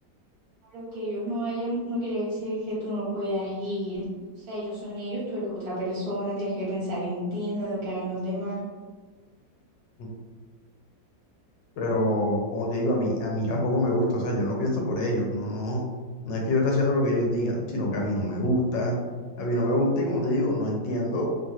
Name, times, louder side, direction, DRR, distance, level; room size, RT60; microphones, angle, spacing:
voice 1, 0.6-4.0 4.4-8.6, equal, 55° right, -7 dB, 1.3 m, -31 dB
voice 2, 11.8-15.8 16.2-18.9 19.4-21.4, left 1 dB, 75° left, -1 dB, 1.3 m, -25 dB
3.1 x 2.7 x 2.3 m, 1.4 s
omnidirectional pair, 2.0 m